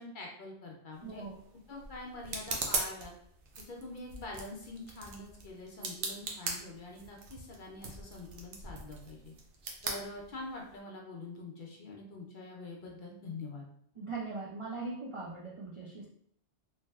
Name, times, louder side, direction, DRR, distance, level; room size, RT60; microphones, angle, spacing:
voice 1, 0.0-1.2 1.7-3.1 3.7-9.3 9.8-13.6, left 2 dB, 55° left, -1 dB, 0.6 m, -45 dB
sound 1, 0.9-10.8, right 4 dB, 85° right, 0.9 m, -41 dB
voice 2, 1.0-1.4 14.0-16.1, right 3 dB, 55° right, -4 dB, 0.3 m, -40 dB
3.2 x 2.6 x 2.3 m, 0.66 s
omnidirectional pair, 1.1 m